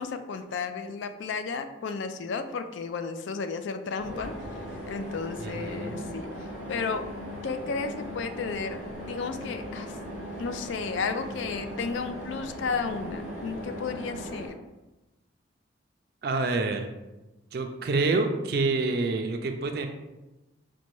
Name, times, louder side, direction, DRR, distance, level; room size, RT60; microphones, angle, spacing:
voice 1, 0.0-4.3 4.9-6.3 6.7-7.0 7.4-8.8 9.1-10.0 10.4-14.5, left 5 dB, 75° left, 8 dB, 0.3 m, -33 dB
sound 1, 4.0-14.5, equal, 55° left, 1.2 m, -38 dB
voice 2, 5.4-6.1 16.2-16.9 17.5-19.9, right 3 dB, 55° right, 5 dB, 0.3 m, -27 dB
5.1 x 2.2 x 3.0 m, 1.0 s
head